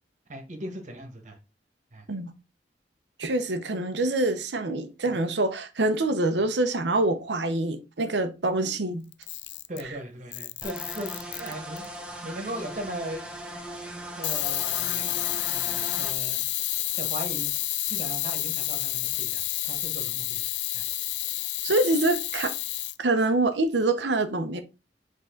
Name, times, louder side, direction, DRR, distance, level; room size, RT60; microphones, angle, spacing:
voice 1, 0.3-1.4 1.9-2.1 5.1-5.2 9.7-11.9 12.2-13.2 14.2-16.4 17.0-17.5 17.8-20.8, right 1 dB, 45° right, 1.6 m, -38 dB
voice 2, 3.2-9.1 21.6-22.5 23.0-24.6, right 2 dB, 85° right, 0.9 m, -25 dB
Camera, 9.1-9.9 10.3-11.8 14.2-23.0, left 16 dB, 85° left, 0.4 m, -30 dB
sound 1, 10.6-16.1, right 1 dB, 5° right, 1.0 m, -39 dB
7.7 x 3.8 x 3.9 m
head